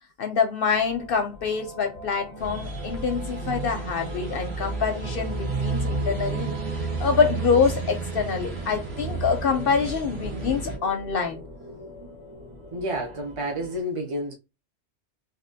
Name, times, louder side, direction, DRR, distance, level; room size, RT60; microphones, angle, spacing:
voice 1, 0.2-6.5 7.0-11.4, left 6 dB, 60° left, 0.7 m, -25 dB
sound 1, 0.7-13.8, equal, 90° right, 1.8 m, -41 dB
sound 2, 2.4-10.8, right 4 dB, 65° right, 1.2 m, -31 dB
voice 2, 12.7-14.3, equal, 40° right, 0.5 m, -30 dB
3.3 x 2.6 x 2.6 m
omnidirectional pair, 1.2 m